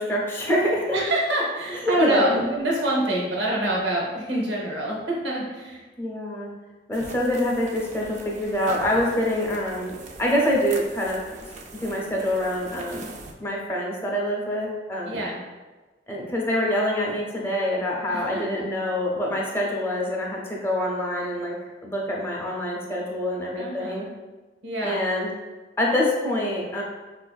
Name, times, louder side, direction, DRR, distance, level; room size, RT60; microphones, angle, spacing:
voice 1, 0.0-0.8 1.7-2.3 6.0-6.5 6.9-9.9 10.2-11.2 11.8-13.1 13.4-15.2 16.1-21.5 21.8-24.0 24.8-25.3 25.8-26.8, left 1 dB, 15° left, -3 dB, 0.6 m, -25 dB
voice 2, 0.9-5.8 15.0-15.4 18.1-18.6 23.5-24.1 24.6-25.0, right 1 dB, 75° right, -3 dB, 0.7 m, -26 dB
sound 1, 6.9-13.3, right 3 dB, 40° right, 0.3 m, -42 dB
4.4 x 2.5 x 2.3 m, 1.2 s
head